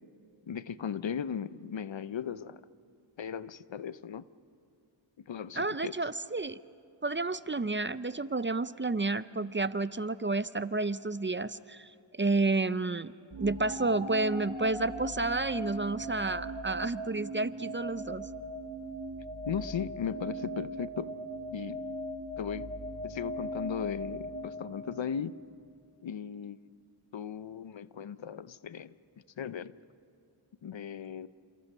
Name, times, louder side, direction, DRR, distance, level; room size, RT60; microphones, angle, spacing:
voice 1, 0.5-2.6 3.2-4.3 5.3-5.9 19.5-21.1 21.5-21.8 22.4-22.7 23.0-25.4 26.0-26.7 27.1-28.9 29.4-29.7 30.6-31.3, left 7 dB, 70° left, 15 dB, 0.7 m, -37 dB
voice 2, 5.6-6.6 7.0-13.1 13.4-18.3, right 3 dB, 25° right, 15 dB, 0.6 m, -30 dB
sound 1, 13.3-25.4, right 1 dB, 65° right, 3.2 m, -39 dB
29.0 x 27.5 x 5.5 m, 2.5 s
wide cardioid pair, 50°, 48 cm